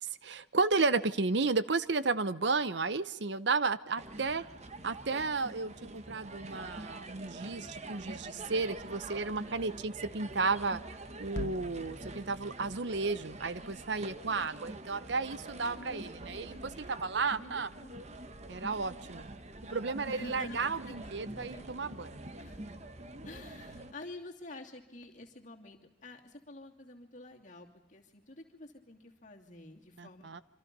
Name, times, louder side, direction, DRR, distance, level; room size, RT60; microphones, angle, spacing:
voice 1, 0.0-4.4 4.8-10.8 11.2-16.5 16.9-17.7 18.5-19.3 19.7-22.3 30.0-30.4, right 4 dB, 60° right, 15 dB, 0.8 m, -33 dB
sound 1, 4.0-23.9, right 2 dB, 35° right, 1.3 m, -46 dB
sound 2, 11.3-15.7, left 1 dB, 65° left, 1.2 m, -47 dB
voice 2, 15.7-16.1 16.4-17.0 17.4-17.5 17.8-17.9 20.1-20.9 21.3-21.6 22.4-22.6 23.2-30.3, left 2 dB, 40° left, 1 dB, 2.9 m, -48 dB
26.5 x 25.5 x 5.4 m, 0.84 s
head